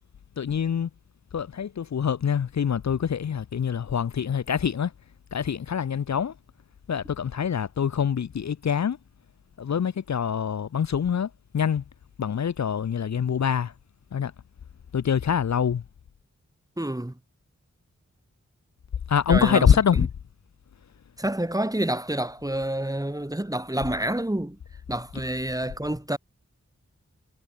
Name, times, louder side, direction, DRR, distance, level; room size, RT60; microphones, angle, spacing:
voice 1, 0.4-0.9 1.3-4.9 5.3-6.3 6.9-9.0 9.6-11.8 12.2-13.7 14.1-14.3 14.9-15.8 19.1-20.1, left 7 dB, 65° left, 0.6 m, -25 dB
voice 2, 16.8-17.1 19.3-19.7 21.2-24.6 24.9-26.2, right 1 dB, 10° right, 1.6 m, -28 dB
wide cardioid pair, 55°, 29 cm